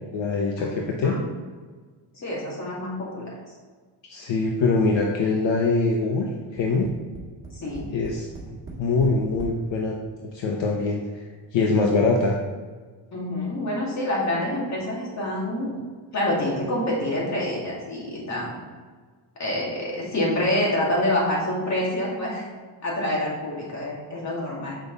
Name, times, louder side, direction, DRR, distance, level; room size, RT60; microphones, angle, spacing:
voice 1, 0.1-1.2 4.0-6.3 6.5-6.9 7.9-8.3 8.8-9.9 10.3-11.2 11.5-12.4, left 3 dB, 65° left, 0 dB, 1.0 m, -23 dB
voice 2, 2.2-3.2 7.5-7.9 13.1-15.7 16.1-18.6 19.4-22.5 22.8-24.8, left 1 dB, 35° left, -4 dB, 2.4 m, -27 dB
Tap, 6.6-9.6 10.4-10.5 10.8-10.9, right 3 dB, 25° right, 1.8 m, -39 dB
7.8 x 5.3 x 4.0 m, 1.4 s
cardioid pair, 145°, 48 cm